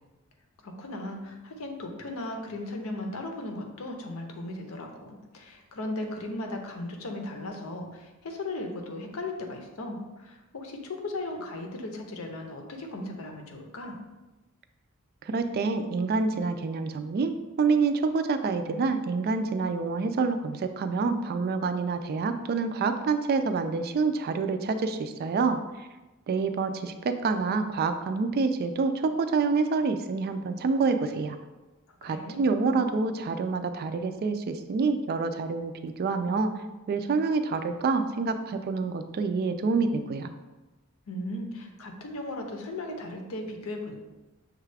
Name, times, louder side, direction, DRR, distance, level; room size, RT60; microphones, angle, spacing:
voice 1, 0.6-14.0 31.9-32.4 41.1-43.9, left 2 dB, 70° left, 3 dB, 0.7 m, -37 dB
voice 2, 15.2-25.9 26.3-31.4 32.0-36.5 36.9-40.3, right 4 dB, 45° right, 8 dB, 0.3 m, -27 dB
6.4 x 2.3 x 3.3 m, 1.1 s
head